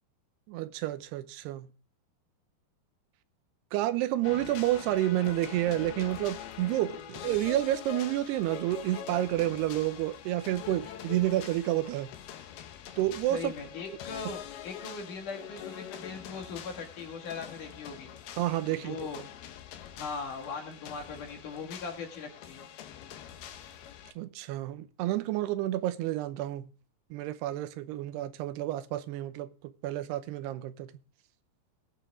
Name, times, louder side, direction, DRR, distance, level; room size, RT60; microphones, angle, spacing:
voice 1, 0.5-1.7 3.7-12.1 13.0-13.5 18.4-19.0 24.2-26.7 27.1-29.5 29.8-30.9, right 14 dB, 90° right, 2.9 m, -30 dB
sound 1, 4.2-24.1, left 10 dB, 75° left, 3.1 m, -44 dB
voice 2, 13.3-18.1 18.6-19.2 20.0-22.7, left 5 dB, 55° left, 3.2 m, -40 dB
20.5 x 7.3 x 3.6 m
omnidirectional pair, 4.6 m